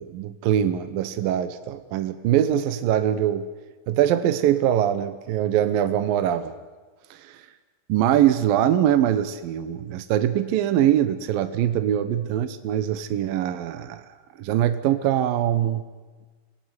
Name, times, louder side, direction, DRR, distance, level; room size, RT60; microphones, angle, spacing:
voice 1, 0.0-3.5 3.9-6.5 7.1-7.4 7.9-14.1 14.4-15.8, right 11 dB, 70° right, 10 dB, 2.6 m, -23 dB
26.0 x 18.0 x 9.6 m, 1.3 s
omnidirectional pair, 4.7 m